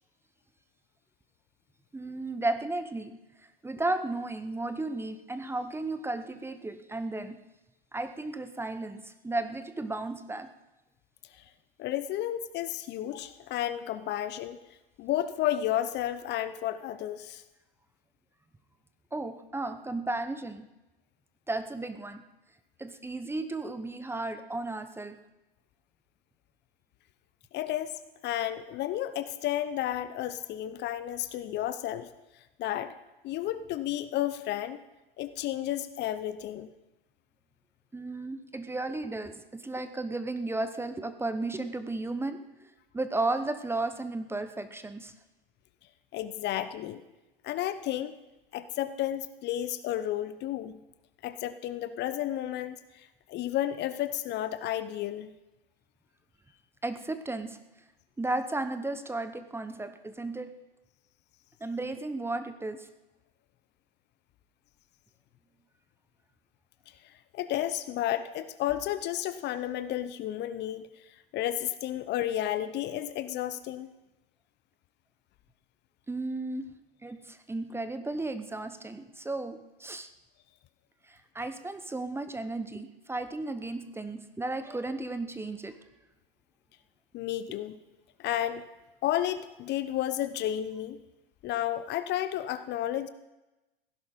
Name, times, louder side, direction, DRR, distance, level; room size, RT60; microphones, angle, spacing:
voice 1, 1.9-3.2 3.6-7.4 7.9-10.5 19.1-20.7 21.5-22.2 22.8-25.2 37.9-45.1 56.8-57.6 58.2-60.5 61.6-62.9 76.1-76.7 77.0-80.1 81.1-85.8, right 2 dB, 10° right, 10 dB, 0.9 m, -34 dB
voice 2, 11.8-14.6 15.0-17.4 27.5-33.0 33.2-34.8 35.2-36.7 46.1-47.0 47.4-48.2 48.5-50.8 51.2-55.3 66.9-73.9 87.1-87.8 88.2-88.6 89.0-91.0 91.4-93.1, left 12 dB, 35° left, 13 dB, 0.8 m, -32 dB
16.5 x 11.0 x 5.3 m, 1.0 s
hypercardioid pair, 95°, 29 cm